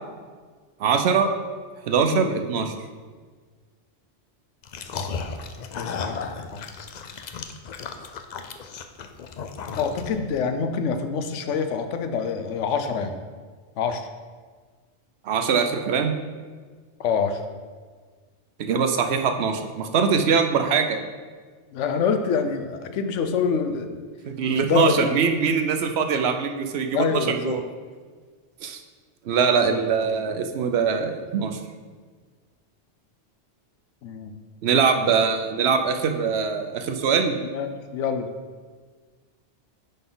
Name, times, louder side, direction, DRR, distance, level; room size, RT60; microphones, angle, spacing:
voice 1, 0.8-1.3 1.9-2.7 15.3-16.1 18.6-21.0 24.3-27.6 28.6-28.8 29.3-31.6 34.6-37.4, right 6 dB, 65° right, 6 dB, 0.8 m, -22 dB
sound 1, 4.6-10.4, left 5 dB, 60° left, 0.4 m, -34 dB
voice 2, 5.7-6.2 6.5-6.6 9.8-13.2 13.8-14.1 17.0-17.4 21.7-24.0 24.5-25.2 26.9-27.6 29.5-30.1 34.0-34.3 37.5-38.3, left 6 dB, 85° left, 8 dB, 1.0 m, -26 dB
10.5 x 4.0 x 3.8 m, 1.5 s
omnidirectional pair, 1.2 m